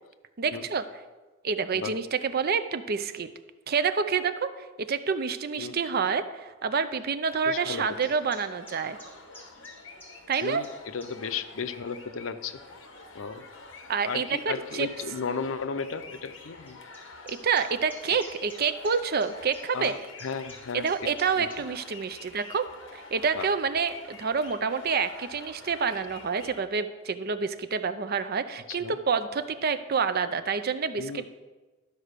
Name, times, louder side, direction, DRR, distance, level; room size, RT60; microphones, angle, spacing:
voice 1, 0.4-0.8 1.4-3.3 3.7-4.5 4.9-9.0 10.3-10.6 13.9-14.9 17.3-19.9 20.7-22.7 22.9-31.3, right 5 dB, 50° right, 11 dB, 0.6 m, -28 dB
sound 1, 7.3-26.6, left 3 dB, 65° left, 1.2 m, -48 dB
voice 2, 7.4-8.1 10.4-12.6 13.1-13.5 13.8-16.8 19.7-21.1 21.4-21.7 23.3-23.5 24.8-24.9 28.7-29.0 31.0-31.3, left 5 dB, 85° left, 11 dB, 0.6 m, -35 dB
sound 2, 8.0-11.1 11.8-12.0 12.9-13.0 14.1-14.2 14.5-14.6 14.9-15.0 16.7-21.6, left 1 dB, 10° left, 2.5 m, -49 dB
12.0 x 4.9 x 6.6 m, 1.2 s
head